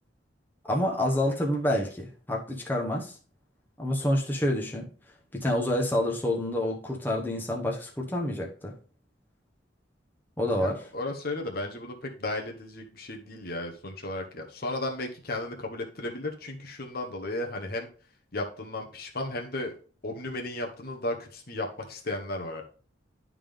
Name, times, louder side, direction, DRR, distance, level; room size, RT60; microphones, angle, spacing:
voice 1, 0.6-3.2 3.8-4.9 5.3-8.7 10.4-10.8, left 1 dB, 10° left, -1 dB, 1.0 m, -28 dB
voice 2, 10.6-17.9 18.3-19.8 20.0-22.6, left 2 dB, 55° left, 2 dB, 1.0 m, -34 dB
11.0 x 3.7 x 3.5 m, 0.39 s
head